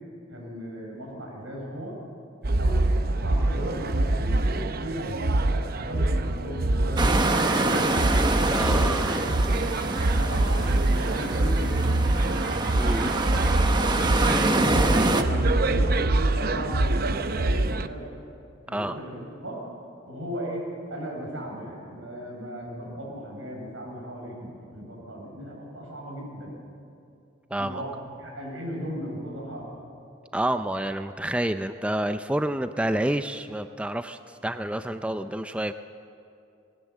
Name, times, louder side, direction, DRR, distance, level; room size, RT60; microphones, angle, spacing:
voice 1, 0.3-2.0 2.6-7.9 8.3-9.7 10.1-11.9 13.7-18.1 18.6-19.6 20.1-26.5 27.6-29.7, equal, 85° right, -1 dB, 7.1 m, -36 dB
sound 1, 2.4-17.9, right 2 dB, 50° right, 0.7 m, -25 dB
sound 2, 7.0-15.2, right 2 dB, 20° right, 1.0 m, -26 dB
voice 2, 8.5-9.2 12.7-13.2 18.7-19.0 27.5-27.8 30.3-35.7, right 1 dB, 5° right, 9 dB, 0.4 m, -29 dB
20.0 x 17.5 x 8.3 m, 2.5 s
head